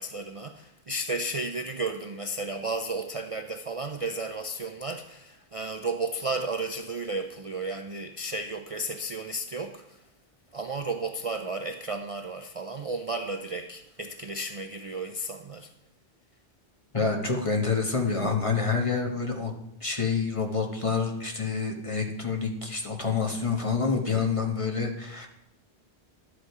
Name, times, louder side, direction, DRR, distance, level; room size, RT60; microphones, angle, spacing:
voice 1, 0.0-10.0 10.5-15.7, right 2 dB, 40° right, 6 dB, 0.5 m, -33 dB
voice 2, 16.9-19.5 19.8-25.3, left 5 dB, 30° left, 2 dB, 1.4 m, -27 dB
11.5 x 8.0 x 4.8 m, 0.84 s
omnidirectional pair, 1.1 m